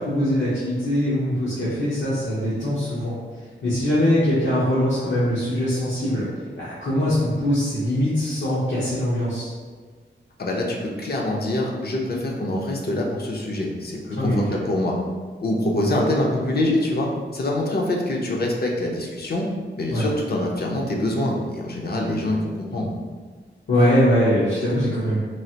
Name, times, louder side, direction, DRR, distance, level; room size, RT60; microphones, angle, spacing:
voice 1, 0.0-3.2 3.6-6.2 6.6-9.5 14.1-14.6 19.9-20.0 23.7-25.3, equal, 85° left, -11 dB, 0.8 m, -22 dB
voice 2, 10.4-14.9 15.4-17.1 17.3-19.5 19.7-22.9, left 1 dB, 55° left, -1 dB, 0.5 m, -25 dB
3.1 x 2.4 x 2.8 m, 1.5 s
wide cardioid pair, 100°, 19 cm